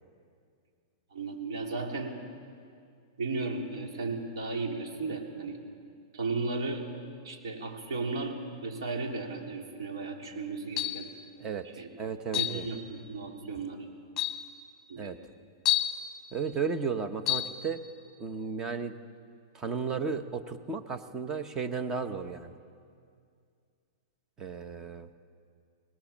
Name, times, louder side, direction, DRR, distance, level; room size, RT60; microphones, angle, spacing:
voice 1, 1.1-2.2 3.2-5.6 6.1-6.9 7.2-11.1 11.6-11.9 12.3-13.9 14.9-15.1, right 3 dB, 90° right, 1 dB, 3.9 m, -35 dB
sound 1, 10.8-11.1 12.3-12.6 13.6-13.7 14.2-14.5 15.7-16.0 17.3-17.5, left 13 dB, 20° left, 1.4 m, -28 dB
voice 2, 12.0-12.6 15.0-15.2 16.3-17.8 18.2-18.9 19.5-22.5 24.4-25.1, right 5 dB, 20° right, 9 dB, 1.0 m, -34 dB
24.0 x 20.5 x 7.4 m, 2.3 s
hypercardioid pair, 145°, 2 cm